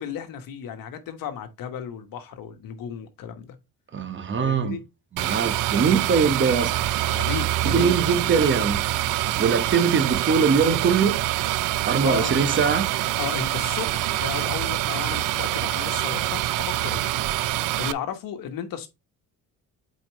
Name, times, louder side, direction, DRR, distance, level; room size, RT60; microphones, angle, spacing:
voice 1, 0.0-3.6 4.4-4.8 7.1-7.9 12.0-12.5 13.2-17.1 17.8-18.9, left 8 dB, 75° left, 1.4 m, -34 dB
voice 2, 3.9-4.8 5.1-6.8 7.6-11.2 11.8-12.9, right 5 dB, 35° right, 1.1 m, -22 dB
sound 1, 5.2-17.9, right 15 dB, 65° right, 0.5 m, -25 dB
8.4 x 4.5 x 3.1 m
cardioid pair, 115°, 34 cm